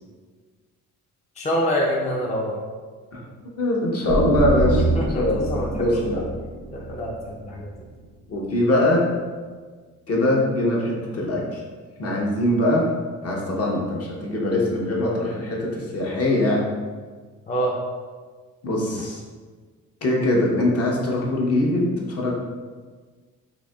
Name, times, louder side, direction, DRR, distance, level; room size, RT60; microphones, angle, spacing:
voice 1, 1.4-2.6 4.9-6.0 6.7-7.7 17.5-17.8, equal, 25° left, -3 dB, 0.5 m, -26 dB
voice 2, 3.6-4.9 5.1-6.2 8.3-9.1 10.1-11.6 12.0-12.9 13.2-16.6 18.6-19.2 20.0-22.3, left 1 dB, 50° left, -3 dB, 0.9 m, -22 dB
sound 1, 4.1-7.7, right 2 dB, 65° right, 0.5 m, -25 dB
4.0 x 2.7 x 2.3 m, 1.5 s
cardioid pair, 90°, 30 cm